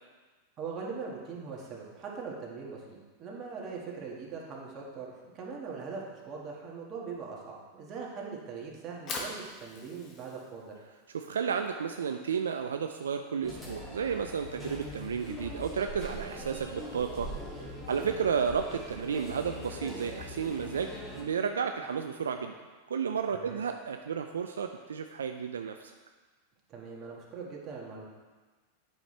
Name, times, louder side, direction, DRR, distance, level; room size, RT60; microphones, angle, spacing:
voice 1, 0.6-10.8 18.0-18.2 23.3-23.6 26.7-28.1, right 5 dB, 35° right, -2 dB, 1.8 m, -41 dB
Fire, 8.8-15.0, left 3 dB, 35° left, 1.3 m, -45 dB
voice 2, 11.1-17.3 17.6-22.5 22.9-25.9, right 6 dB, 85° right, 6 dB, 0.4 m, -32 dB
sound 1, 13.4-21.2, left 1 dB, 10° left, 2.2 m, -42 dB
sound 2, 16.0-21.3, right 1 dB, 5° right, 1.3 m, -49 dB
8.7 x 5.8 x 3.3 m, 1.4 s
hypercardioid pair, 100°, 0 cm